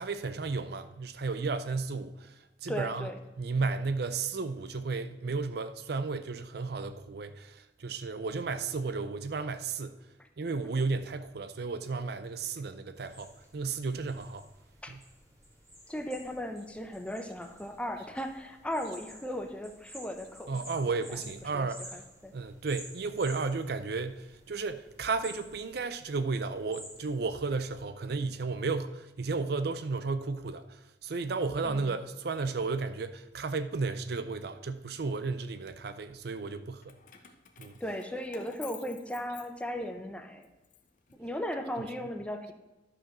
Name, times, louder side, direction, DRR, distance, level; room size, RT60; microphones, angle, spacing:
voice 1, 0.0-3.1 3.4-10.0 10.4-14.5 14.9-15.0 20.5-21.8 22.3-37.0 37.6-37.7, right 4 dB, 60° right, 11 dB, 0.5 m, -33 dB
voice 2, 2.7-3.2 10.2-10.3 14.8-14.9 15.9-22.3 31.6-31.9 37.8-40.5 41.1-42.5, equal, 5° left, 5 dB, 0.8 m, -37 dB
sound 1, 13.0-27.9, equal, 15° right, 2.2 m, -52 dB
Keys jangling, 36.8-40.0 40.4-41.7, left 7 dB, 45° left, 0.9 m, -52 dB
11.5 x 4.9 x 6.0 m, 1.1 s
head